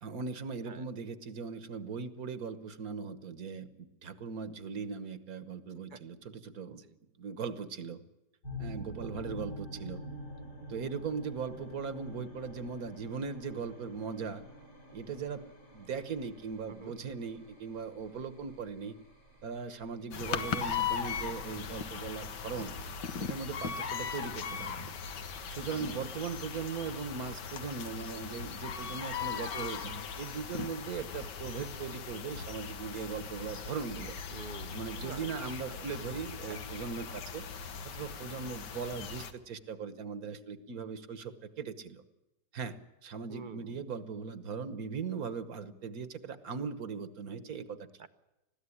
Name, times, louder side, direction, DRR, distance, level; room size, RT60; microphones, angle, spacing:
voice 1, 0.0-6.8 7.2-8.0 8.6-10.0 10.7-14.4 14.9-15.4 15.7-18.9 19.4-22.7 23.2-24.9 25.5-34.1 34.7-37.4 37.9-41.3 41.6-42.0 42.5-47.9, right 5 dB, 60° right, 12 dB, 1.6 m, -39 dB
sound 1, 8.4-24.2, left 1 dB, 70° left, 8.8 m, -48 dB
sound 2, 20.1-39.3, left 6 dB, 90° left, 1.8 m, -39 dB
voice 2, 25.7-26.1 34.3-35.9 36.4-36.8 43.3-43.8 48.0-48.1, right 5 dB, 45° right, 12 dB, 0.7 m, -48 dB
20.5 x 15.0 x 9.9 m, 0.99 s
omnidirectional pair, 1.8 m